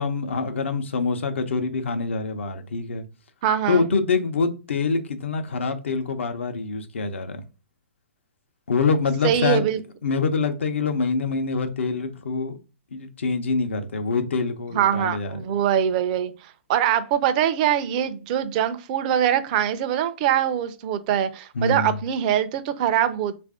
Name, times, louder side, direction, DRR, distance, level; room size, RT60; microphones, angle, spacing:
voice 1, 0.0-3.0 3.7-7.4 8.7-9.6 10.0-12.5 12.9-15.3 21.6-21.9, left 4 dB, 75° left, 0.7 m, -25 dB
voice 2, 3.4-3.9 9.2-9.8 14.7-23.4, right 10 dB, 40° right, 0.5 m, -23 dB
3.3 x 2.5 x 3.5 m
hypercardioid pair, 130°, 7 cm